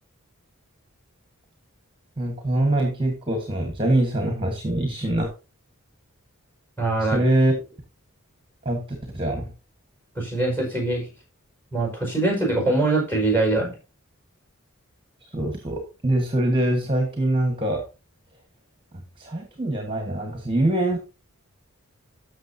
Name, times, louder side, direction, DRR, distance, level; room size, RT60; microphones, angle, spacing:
voice 1, 2.2-5.3 7.0-7.6 8.6-8.8 9.1-9.5 15.3-17.8 19.2-21.0, right 1 dB, 25° right, 4 dB, 1.5 m, -23 dB
voice 2, 6.8-7.2 10.2-11.1 11.7-13.7, right 2 dB, 10° left, 1 dB, 5.0 m, -23 dB
12.5 x 6.6 x 2.7 m, 0.30 s
head